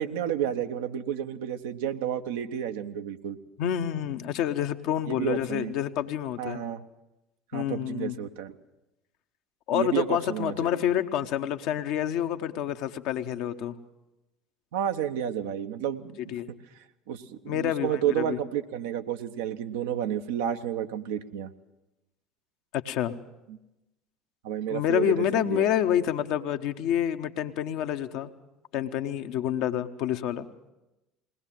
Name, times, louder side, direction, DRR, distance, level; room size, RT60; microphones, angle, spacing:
voice 1, 0.0-3.4 5.1-5.7 6.4-6.8 7.5-8.5 9.7-10.8 14.7-16.2 17.1-21.5 23.5-23.6 24.4-25.7, right 9 dB, 70° right, 8 dB, 0.9 m, -31 dB
voice 2, 3.6-6.6 7.5-8.2 9.7-13.8 16.3-16.5 17.5-18.4 22.7-23.1 24.7-28.3 28.7-30.5, left 10 dB, 60° left, 7 dB, 1.0 m, -28 dB
20.5 x 18.0 x 7.6 m, 0.96 s
figure-of-eight pair, 65°, 0 cm